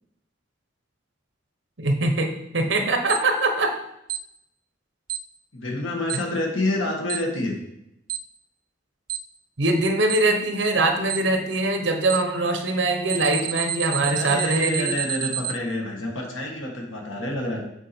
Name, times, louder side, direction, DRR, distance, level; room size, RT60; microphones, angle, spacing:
voice 1, 1.8-3.8 9.6-14.9, right 2 dB, 70° right, 6 dB, 1.0 m, -22 dB
Alarm, 3.1-3.2 4.1-4.2 5.1-5.2 6.1-6.2 7.1-7.2 8.1-8.2 9.1-9.2 10.1-10.2 11.1-11.2 12.1-12.2 13.1-15.5, right 13 dB, 45° right, 0.4 m, -28 dB
voice 2, 5.5-7.6 14.1-17.6, left 1 dB, 85° left, 1 dB, 1.7 m, -28 dB
7.4 x 4.7 x 4.4 m, 0.80 s
head